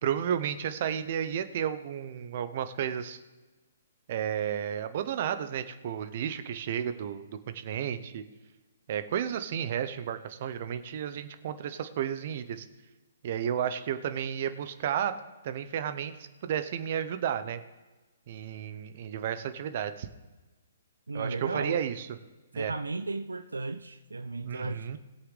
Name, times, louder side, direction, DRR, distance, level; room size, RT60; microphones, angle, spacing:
voice 1, 0.0-3.2 4.1-7.3 7.5-8.2 8.9-12.7 13.2-15.2 15.4-17.6 18.3-20.1 21.1-22.1 22.5-22.7 24.4-25.0, right 9 dB, 45° right, 10 dB, 0.9 m, -32 dB
voice 2, 21.1-21.8 22.5-25.0, right 3 dB, 80° right, 10 dB, 0.5 m, -35 dB
20.5 x 7.9 x 3.4 m, 1.2 s
figure-of-eight pair, 130°, 0 cm